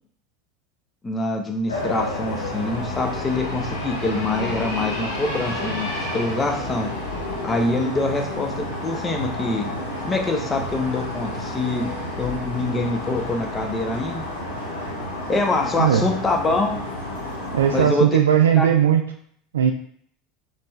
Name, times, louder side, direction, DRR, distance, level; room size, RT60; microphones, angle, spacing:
voice 1, 1.0-5.9 6.1-6.9 7.4-9.7 10.0-11.9 12.2-14.2 15.3-16.8 17.7-18.2 18.5-18.7, left 2 dB, 20° left, 3 dB, 0.9 m, -25 dB
sound 1, 1.7-17.8, left 1 dB, 85° left, 1.0 m, -30 dB
voice 2, 17.5-19.1 19.5-19.7, right 9 dB, 75° right, 4 dB, 0.3 m, -18 dB
4.3 x 3.4 x 3.2 m, 0.63 s
figure-of-eight pair, 75°, 0 cm